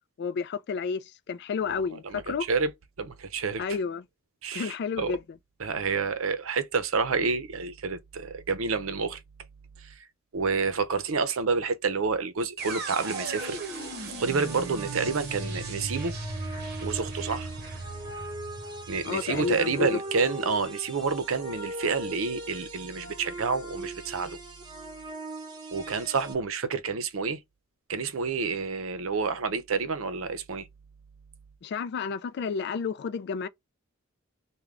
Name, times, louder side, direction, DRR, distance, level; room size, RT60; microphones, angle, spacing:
voice 1, 0.2-2.5 3.6-4.0 4.5-5.2 19.0-20.0 31.6-33.5, left 5 dB, 55° left, 0.3 m, -31 dB
voice 2, 1.7-2.7 3.0-3.6 4.4-5.1 5.6-9.2 9.8-10.0 10.3-13.6 14.2-16.2 16.8-17.5 18.9-24.4 25.7-27.4 27.9-30.7, right 4 dB, 75° right, 0.6 m, -29 dB
sound 1, 12.6-26.3, right 1 dB, 20° right, 1.1 m, -41 dB
sound 2, 12.6-20.5, right 3 dB, 50° right, 0.9 m, -37 dB
3.6 x 2.2 x 3.3 m
head